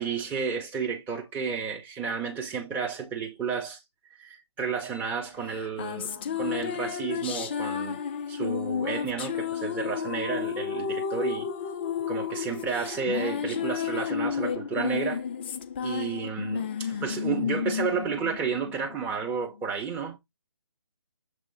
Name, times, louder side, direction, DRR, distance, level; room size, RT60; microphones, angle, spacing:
voice 1, 0.0-3.8 4.1-8.0 8.3-11.5 12.1-15.2 15.8-20.2, right 6 dB, 10° right, 1.3 m, -32 dB
sound 1, 5.5-19.2, left 7 dB, 20° left, 0.5 m, -32 dB
7.6 x 3.4 x 4.2 m
figure-of-eight pair, 145°, 15 cm